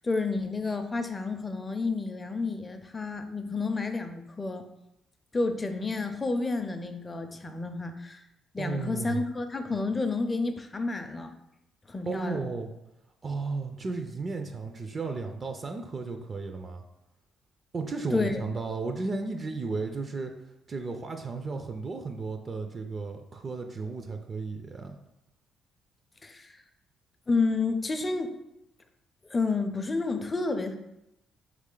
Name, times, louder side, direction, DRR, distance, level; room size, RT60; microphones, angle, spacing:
voice 1, 0.0-4.6 5.3-8.2 8.5-11.3 11.9-12.4 18.1-18.3 26.2-26.6 27.3-28.3 29.3-30.8, left 3 dB, 25° left, 7 dB, 0.4 m, -30 dB
voice 2, 8.6-9.2 12.0-12.7 13.2-16.8 17.7-20.3 20.7-25.0, right 3 dB, 35° right, 5 dB, 0.4 m, -34 dB
3.2 x 3.2 x 3.8 m, 0.87 s
cardioid pair, 90°, 0 cm